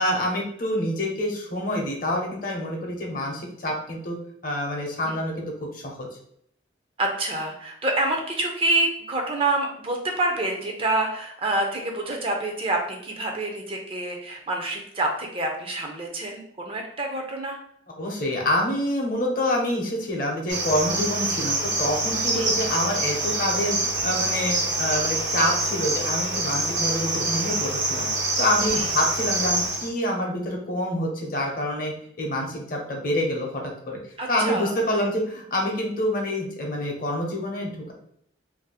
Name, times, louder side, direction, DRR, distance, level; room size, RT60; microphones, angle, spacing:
voice 1, 0.0-4.2 4.4-6.1 18.0-28.1 28.4-34.0 34.3-37.9, left 1 dB, 50° left, 0 dB, 0.7 m, -27 dB
voice 2, 7.0-17.6 22.3-22.5 28.7-28.9 34.2-34.7, right 2 dB, 30° right, 2 dB, 0.5 m, -27 dB
Cricket, 20.5-29.9, right 2 dB, 85° right, 1.1 m, -26 dB
2.6 x 2.0 x 4.0 m, 0.69 s
head